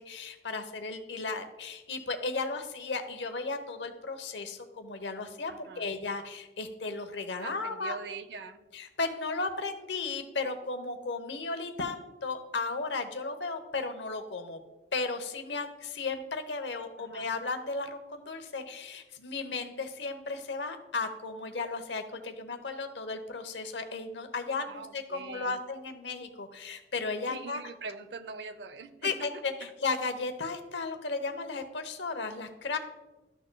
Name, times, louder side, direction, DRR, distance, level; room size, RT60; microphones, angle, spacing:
voice 1, 0.0-8.0 8.7-14.6 14.9-27.6 29.0-32.8, left 3 dB, 80° left, 8 dB, 0.9 m, -35 dB
voice 2, 5.5-5.9 7.4-8.7 17.0-17.3 24.7-25.6 27.3-29.3 29.6-29.7, right 4 dB, 70° right, 11 dB, 0.6 m, -43 dB
13.0 x 6.4 x 2.2 m, 1.1 s
head